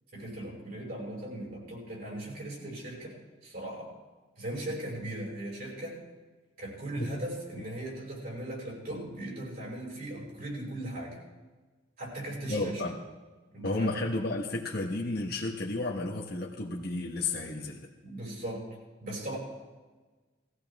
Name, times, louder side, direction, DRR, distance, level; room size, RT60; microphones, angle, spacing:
voice 1, 0.1-3.9 4.4-6.0 6.6-11.2 12.0-12.8 13.5-14.0 18.0-18.7 19.0-19.4, right 1 dB, 55° right, -3 dB, 5.9 m, -38 dB
voice 2, 12.5-13.0 13.6-17.9, left 2 dB, 55° left, -2 dB, 1.3 m, -32 dB
19.5 x 14.5 x 3.6 m, 1.3 s
head